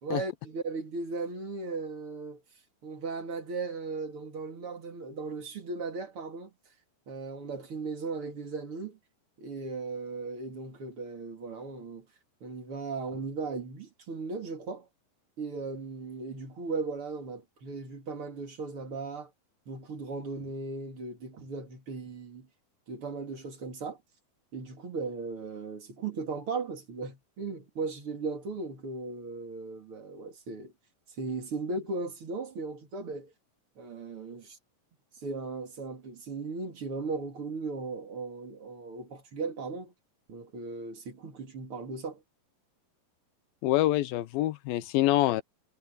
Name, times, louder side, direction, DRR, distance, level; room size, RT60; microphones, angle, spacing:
voice 1, 0.0-2.4 2.8-6.5 7.1-9.0 9.4-12.1 12.4-14.9 15.4-19.3 19.7-22.5 22.9-24.0 24.5-30.7 31.2-33.3 33.8-34.6 35.2-39.9 40.3-42.2, right 4 dB, 40° right, 3.2 m, -37 dB
voice 2, 43.6-45.4, left 15 dB, 85° left, 2.6 m, -25 dB
omnidirectional pair, 4.1 m